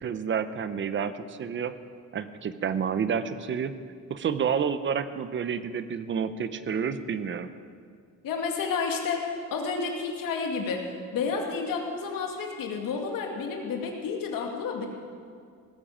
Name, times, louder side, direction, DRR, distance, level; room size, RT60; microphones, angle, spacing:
voice 1, 0.0-1.7 2.1-3.8 4.1-7.5, right 7 dB, 35° right, 12 dB, 0.7 m, -29 dB
voice 2, 8.2-14.9, left 5 dB, 90° left, 1 dB, 2.5 m, -31 dB
18.0 x 10.5 x 7.3 m, 2.2 s
cardioid pair, 175°, 33 cm